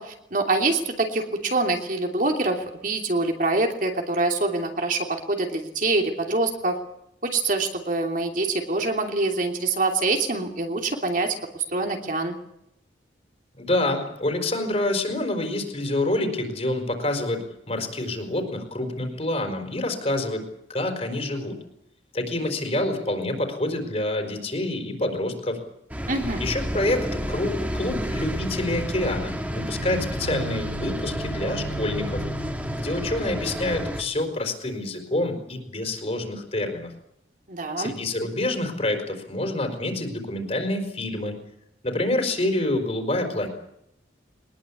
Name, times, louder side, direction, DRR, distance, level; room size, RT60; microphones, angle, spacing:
voice 1, 0.0-6.8 7.2-12.4 26.1-26.4 37.5-37.9, right 2 dB, 45° right, 3 dB, 2.9 m, -25 dB
voice 2, 13.6-20.4 20.7-21.6 22.1-25.6 26.4-32.2 32.8-36.9 37.8-41.4 41.8-43.5, left 1 dB, 35° left, 5 dB, 4.6 m, -27 dB
sound 1, 25.9-34.0, equal, 10° right, 2.7 m, -30 dB
22.5 x 20.5 x 8.5 m, 0.79 s
head